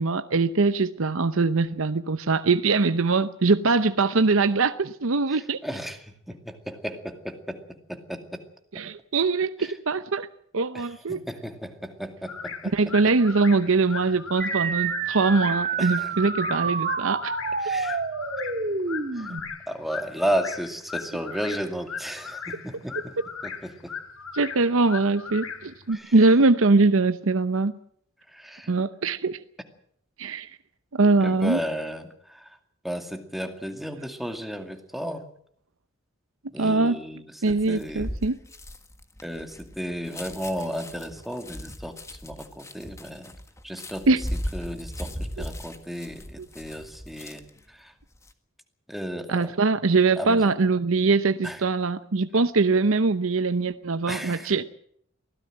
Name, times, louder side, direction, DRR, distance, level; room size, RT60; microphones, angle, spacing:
voice 1, 0.0-5.6 8.7-10.3 10.5-11.2 12.7-17.4 22.9-23.3 24.3-27.8 28.7-29.4 30.2-30.5 30.9-31.6 36.6-37.0 37.4-38.4 44.1-44.2 45.4-45.5 49.3-54.6, right 3 dB, 75° right, 12 dB, 0.8 m, -22 dB
voice 2, 5.6-6.0 6.3-7.6 7.9-8.4 10.7-10.8 11.1-12.7 15.8-16.1 17.6-18.0 19.1-19.4 19.7-23.1 23.6-23.9 25.9-26.1 28.3-28.7 31.2-32.5 32.8-35.2 36.5-38.1 39.2-41.9 42.2-43.3 43.6-44.1 44.5-45.1 45.4-47.4 47.8-47.9 48.9-49.4 50.2-50.5 51.4-51.6 54.1-54.6, equal, ahead, 6 dB, 2.2 m, -33 dB
sound 1, 12.3-25.9, left 6 dB, 90° left, 3.0 m, -38 dB
sound 2, 14.4-19.4, right 5 dB, 40° right, 2.1 m, -28 dB
sound 3, 37.4-47.6 48.0-48.3, equal, 15° left, 1.6 m, -37 dB
23.5 x 16.5 x 7.7 m, 0.66 s
head